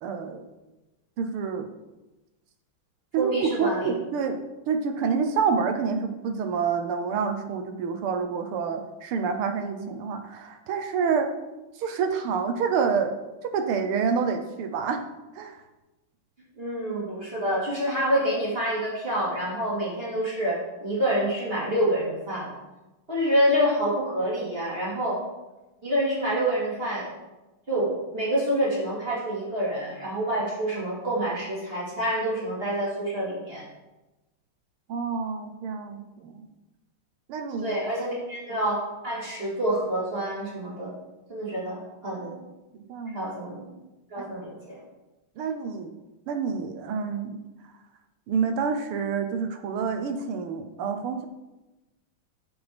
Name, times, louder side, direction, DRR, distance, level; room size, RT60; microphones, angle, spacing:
voice 1, 0.0-0.4 1.2-1.7 3.1-4.4 4.7-11.3 11.8-13.2 13.4-15.0 15.4-15.6 34.9-36.5 37.3-37.8 42.7-43.2 44.2-44.3 45.4-45.9 46.3-47.4 48.3-51.3, right 6 dB, 80° right, 6 dB, 1.8 m, -28 dB
voice 2, 3.2-3.9 16.6-22.5 23.1-25.2 25.8-27.1 27.7-33.6 37.6-40.9 41.3-42.4 43.1-43.7 44.1-44.8, equal, 25° right, -7 dB, 2.6 m, -27 dB
13.5 x 5.5 x 3.5 m, 1.0 s
omnidirectional pair, 2.4 m